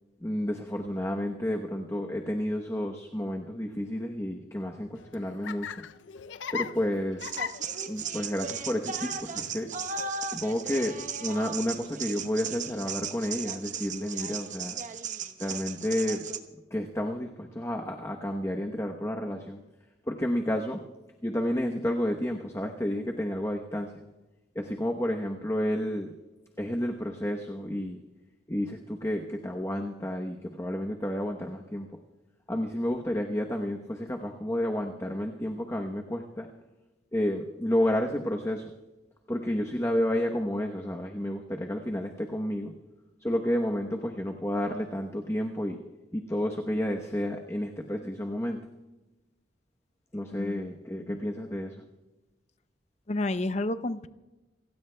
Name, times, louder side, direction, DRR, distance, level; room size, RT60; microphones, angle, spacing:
voice 1, 0.2-5.7 6.5-7.4 7.9-9.7 10.3-14.8 15.4-16.2 16.7-19.6 20.1-20.8 21.2-23.9 24.5-26.1 26.6-28.0 28.5-31.9 32.5-36.5 37.1-38.7 39.3-42.7 43.2-45.8 46.1-48.6 50.1-51.8, left 1 dB, 15° left, 2 dB, 0.9 m, -31 dB
Laughter, 4.8-12.4, left 6 dB, 85° left, 0.5 m, -42 dB
sound 1, 7.2-16.4, right 6 dB, 40° right, 1.0 m, -36 dB
voice 2, 53.1-54.1, left 2 dB, 35° left, 12 dB, 0.6 m, -30 dB
29.0 x 17.5 x 2.3 m, 1.1 s
head